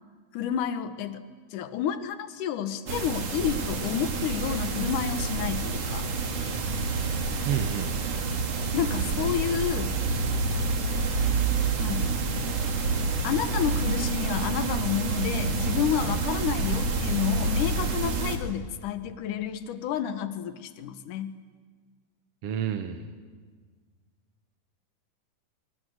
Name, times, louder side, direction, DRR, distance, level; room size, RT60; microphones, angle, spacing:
voice 1, 0.3-1.2 1.5-6.1 8.7-10.0 11.8-12.2 13.2-21.4, left 9 dB, 70° left, 11 dB, 2.3 m, -30 dB
sound 1, 2.9-18.4, right 4 dB, 45° right, 2.9 m, -28 dB
voice 2, 7.4-8.1 22.4-23.1, right 9 dB, 65° right, 7 dB, 1.5 m, -30 dB
24.5 x 24.0 x 7.9 m, 1.5 s
omnidirectional pair, 4.4 m